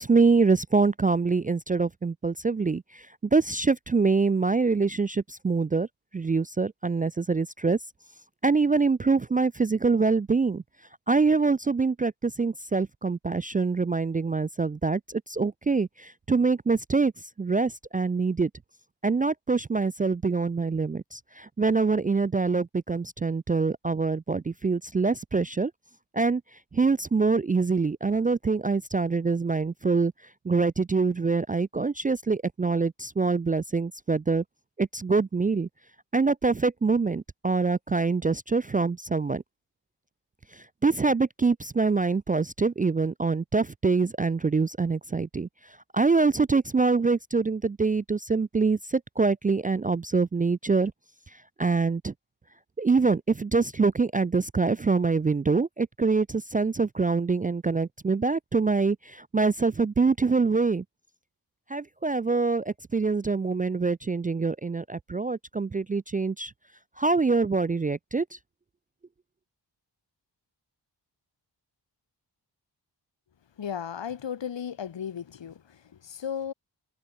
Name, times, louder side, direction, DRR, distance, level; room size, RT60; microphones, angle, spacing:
voice 1, 0.0-2.8 3.3-5.9 6.1-7.8 8.4-10.6 11.1-17.1 17.4-18.5 19.0-25.7 26.1-26.4 26.7-30.1 30.5-34.4 34.8-35.7 36.1-39.4 40.8-45.5 45.9-50.9 51.6-52.1 52.8-60.8 61.7-66.5 67.0-68.2, right 4 dB, 20° right, 0.3 m, -25 dB
voice 2, 73.6-76.5, left 8 dB, 85° left, 3.6 m, -35 dB
wide cardioid pair, 105°, 43 cm